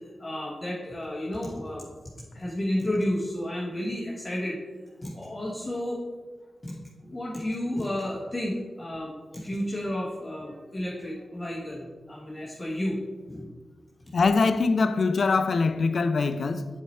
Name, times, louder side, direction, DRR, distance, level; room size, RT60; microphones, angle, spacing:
voice 1, 0.2-1.8 2.3-4.6 5.0-6.0 6.6-6.8 7.0-13.0 13.3-13.5, left 1 dB, 25° left, 1.2 m, -31 dB
voice 2, 14.1-16.7, left 4 dB, 65° left, 0.4 m, -23 dB
7.0 x 4.4 x 4.2 m
cardioid pair, 50°, 0 cm